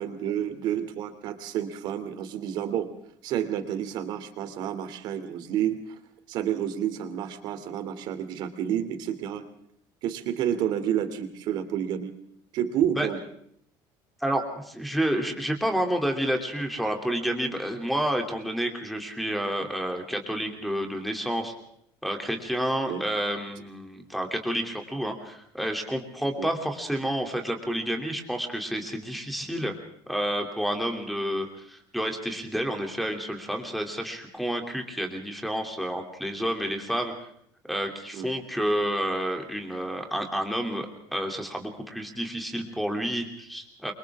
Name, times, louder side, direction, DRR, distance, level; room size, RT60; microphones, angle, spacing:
voice 1, 0.0-2.9 3.2-6.0 6.3-9.4 10.0-12.1 12.5-13.2 22.9-23.0 26.4-26.5 38.1-38.3, right 10 dB, 50° right, 9 dB, 2.8 m, -30 dB
voice 2, 14.2-21.5 22.0-29.8 30.1-37.1 37.6-43.9, equal, ahead, 4 dB, 2.9 m, -29 dB
29.0 x 25.0 x 3.6 m, 0.68 s
cardioid pair, 175°, 9 cm